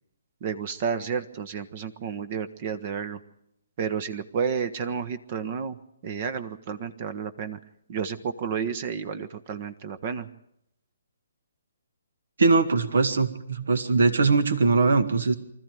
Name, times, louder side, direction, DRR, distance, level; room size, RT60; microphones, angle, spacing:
voice 1, 0.4-3.2 3.8-5.8 6.0-7.6 7.9-10.3, right 6 dB, 40° right, 13 dB, 1.2 m, -31 dB
voice 2, 12.4-15.3, right 4 dB, 70° right, 10 dB, 2.0 m, -21 dB
24.5 x 14.0 x 9.2 m, 0.80 s
figure-of-eight pair, 135°, 0 cm